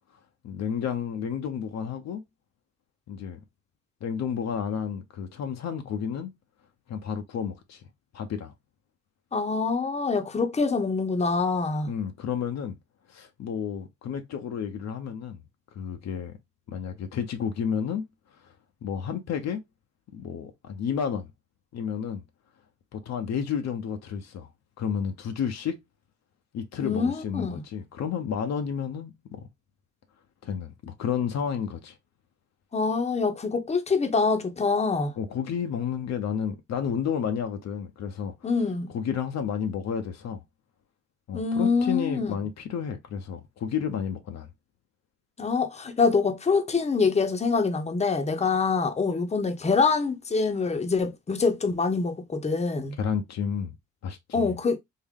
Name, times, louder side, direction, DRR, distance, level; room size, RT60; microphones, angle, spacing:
voice 1, 0.4-2.2 3.1-3.4 4.0-6.3 6.9-7.8 8.1-8.5 11.9-12.8 13.1-15.4 15.7-16.3 16.7-18.1 18.4-18.5 18.8-19.6 20.1-21.3 21.7-22.2 22.9-24.5 24.8-25.8 26.5-29.5 30.4-32.0 35.2-38.3 38.9-40.4 41.3-44.5 53.0-53.7 54.0-54.5, left 7 dB, 60° left, 0.6 m, -31 dB
voice 2, 9.3-11.9 26.8-27.6 32.7-35.1 38.4-38.9 41.3-42.3 45.4-53.0 54.3-54.8, left 4 dB, 20° left, 0.7 m, -25 dB
3.6 x 2.1 x 3.5 m
cardioid pair, 90°, 30 cm